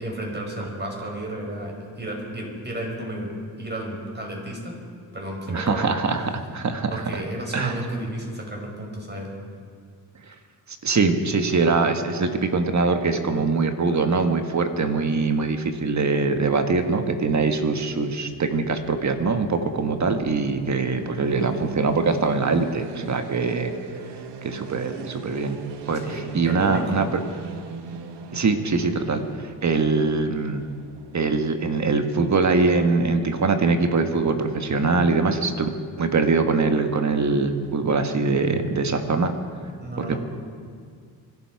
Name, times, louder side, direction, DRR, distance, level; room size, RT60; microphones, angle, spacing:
voice 1, 0.0-3.3 3.6-4.8 5.1-5.9 6.9-9.3 26.0-27.0 39.8-40.2, right 1 dB, 25° right, 0 dB, 5.2 m, -32 dB
voice 2, 5.5-7.2 7.5-7.7 10.8-23.7 24.4-25.6 25.9-27.2 28.3-30.6 31.1-35.7 36.0-39.3 40.0-40.2, right 4 dB, 40° right, 7 dB, 1.5 m, -23 dB
sound 1, 18.6-32.5, right 5 dB, 75° right, 1.4 m, -39 dB
24.5 x 12.0 x 4.8 m, 2.1 s
cardioid pair, 80°, 43 cm